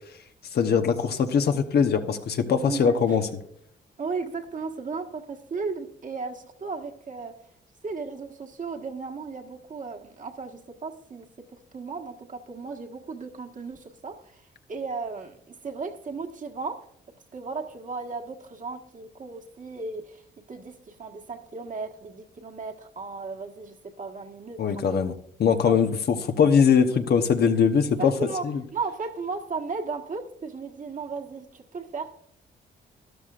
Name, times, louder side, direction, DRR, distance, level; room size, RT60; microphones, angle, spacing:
voice 1, 0.5-3.2 24.6-25.1 25.4-25.9 26.2-28.1, left 6 dB, 60° left, 7 dB, 0.9 m, -21 dB
voice 2, 2.6-3.2 4.0-7.4 7.8-16.9 17.3-25.1 25.6-25.8 27.8-32.2, right 4 dB, 45° right, 3 dB, 1.5 m, -35 dB
13.0 x 11.5 x 2.5 m, 0.69 s
cardioid pair, 85°, 18 cm